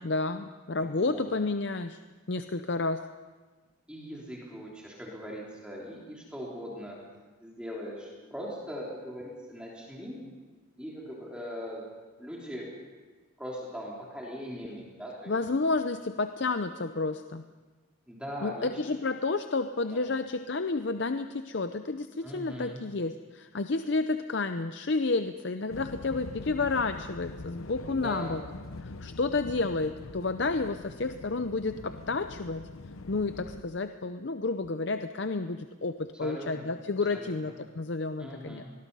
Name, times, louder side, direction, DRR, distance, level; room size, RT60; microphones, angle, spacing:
voice 1, 0.0-2.0 2.3-3.1 15.3-17.4 18.4-28.4 28.8-32.6 33.1-38.6, left 3 dB, 55° left, 9 dB, 0.6 m, -30 dB
voice 2, 0.8-1.3 3.9-7.0 7.4-10.2 10.8-11.9 12.2-12.7 13.4-15.4 18.1-18.8 19.9-20.0 22.2-22.8 27.8-28.4 36.1-36.7 37.1-37.5 38.2-38.7, equal, 5° right, -4 dB, 3.5 m, -40 dB
sound 1, 25.7-33.6, left 2 dB, 85° left, 0.8 m, -44 dB
24.5 x 20.5 x 5.6 m, 1.3 s
head